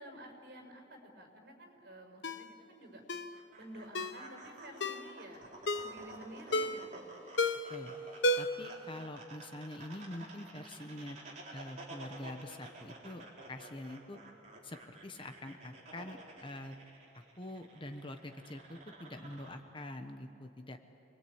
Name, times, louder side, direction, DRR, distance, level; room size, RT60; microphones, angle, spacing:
voice 1, 0.0-3.0 3.6-5.4 5.8-7.2, right 1 dB, 60° right, 3 dB, 6.2 m, -51 dB
Ringtone, 2.2-2.5 3.1-3.3 4.0-4.2 4.8-5.1 5.7-6.0 6.5-6.9 7.4-7.8 8.2-8.7 9.0-9.1, left 1 dB, 80° left, 0.9 m, -32 dB
sound 1, 3.3-19.5, right 2 dB, 40° right, 3.7 m, -52 dB
voice 2, 8.4-11.2 11.5-14.2 14.6-16.8 17.4-20.8, left 1 dB, 30° left, 6 dB, 1.1 m, -45 dB
28.5 x 21.5 x 8.8 m, 2.7 s
head